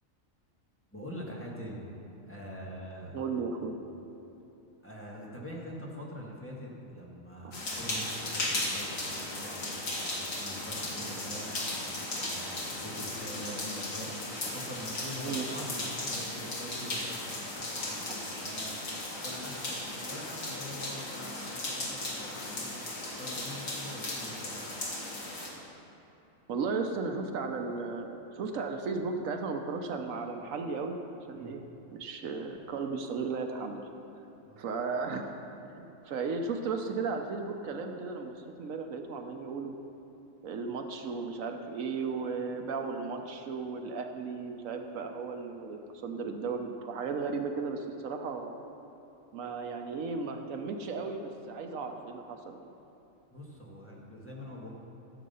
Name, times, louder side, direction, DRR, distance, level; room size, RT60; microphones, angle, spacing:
voice 1, 0.9-1.8 2.3-3.2 4.8-11.7 12.2-14.1 14.5-18.8 19.2-22.7 23.2-24.6 31.4-31.5 34.4-34.6 53.3-54.7, equal, 10° left, -5 dB, 1.7 m, -44 dB
voice 2, 3.1-3.8 7.4-7.5 15.2-15.4 26.5-31.0 31.3-31.6 31.9-33.8 34.6-35.3 35.8-39.7 40.4-48.6 49.3-52.7, right 4 dB, 80° right, 5 dB, 1.2 m, -35 dB
sound 1, 7.5-25.5, left 2 dB, 80° left, 2.1 m, -36 dB
13.5 x 7.6 x 5.5 m, 2.9 s
omnidirectional pair, 1.4 m